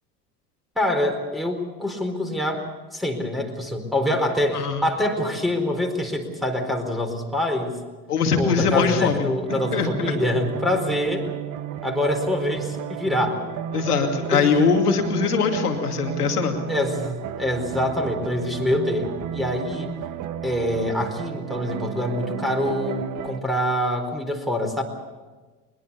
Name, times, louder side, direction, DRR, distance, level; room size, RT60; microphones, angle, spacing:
voice 1, 0.8-2.6 2.9-7.8 8.4-11.3 11.8-13.4 13.7-13.9 14.3-14.6 16.7-19.9 20.4-24.8, left 1 dB, ahead, 3 dB, 4.4 m, -25 dB
voice 2, 8.1-10.1 13.7-16.6, left 5 dB, 80° left, 4 dB, 2.6 m, -22 dB
sound 1, 9.5-23.4, right 9 dB, 40° right, 1.3 m, -32 dB
22.0 x 21.0 x 7.1 m, 1.3 s
figure-of-eight pair, 70°, 45 cm